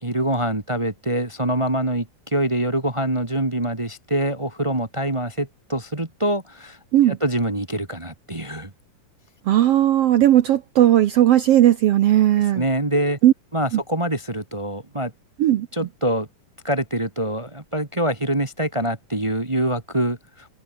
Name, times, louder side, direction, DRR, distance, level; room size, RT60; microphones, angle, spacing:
voice 1, 0.0-6.8 7.1-8.7 12.5-13.2 13.5-15.1 15.7-16.3 16.6-20.5, right 1 dB, 35° right, 0.4 m, -25 dB
voice 2, 9.5-12.6 13.2-13.3 13.7-13.8 15.4-15.7, right 12 dB, 70° right, 1.5 m, -16 dB
omnidirectional pair, 3.8 m